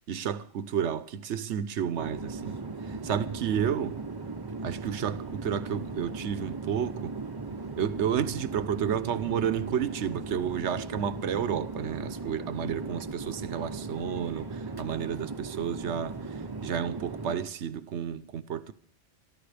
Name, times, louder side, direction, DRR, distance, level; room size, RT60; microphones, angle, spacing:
voice 1, 0.1-4.0 4.6-7.1 7.8-16.2 16.6-18.7, right 8 dB, 75° right, 1.1 m, -31 dB
Chatter / Fixed-wing aircraft airplane, 2.0-17.4, right 3 dB, 25° right, 0.7 m, -38 dB
24.5 x 14.0 x 3.4 m
omnidirectional pair, 1.2 m